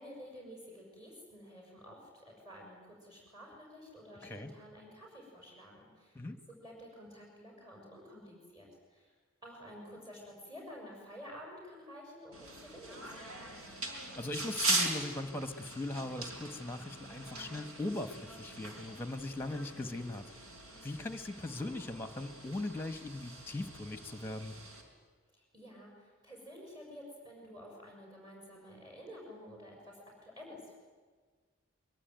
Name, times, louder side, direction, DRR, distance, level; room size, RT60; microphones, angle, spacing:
voice 1, 0.0-6.2 6.5-9.1 9.4-13.6 25.3-30.8, equal, 20° right, -2 dB, 6.5 m, -51 dB
sound 1, 12.3-24.8, right 2 dB, 85° right, 4.8 m, -40 dB
voice 2, 14.2-20.2 20.8-24.5, left 2 dB, 10° left, 10 dB, 1.3 m, -39 dB
23.5 x 22.5 x 9.3 m, 1.5 s
head